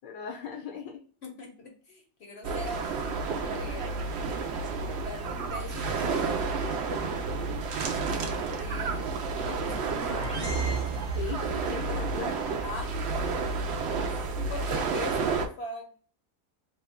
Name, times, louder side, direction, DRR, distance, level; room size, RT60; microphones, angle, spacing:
voice 1, 0.0-1.0 8.1-8.3 11.1-12.5, left 8 dB, 85° left, 2 dB, 1.3 m, -38 dB
voice 2, 1.2-4.0 5.0-6.5 7.8-10.1 12.6-13.0 14.0-15.9, left 2 dB, 55° left, 2 dB, 0.8 m, -42 dB
sound 1, 2.4-15.5, right 4 dB, 80° right, 0.6 m, -31 dB
sound 2, 9.5-11.8, right 4 dB, 15° right, 0.6 m, -34 dB
3.7 x 2.2 x 3.5 m, 0.41 s
omnidirectional pair, 1.8 m